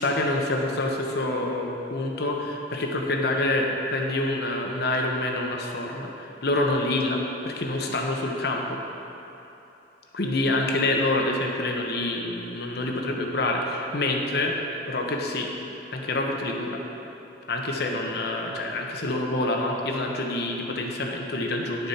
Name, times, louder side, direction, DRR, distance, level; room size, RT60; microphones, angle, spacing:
voice 1, 0.0-8.8 10.1-14.6 14.9-15.5 15.9-16.8 17.5-21.9, left 2 dB, 60° left, 1 dB, 1.0 m, -27 dB
10.5 x 6.9 x 4.3 m, 3.0 s
head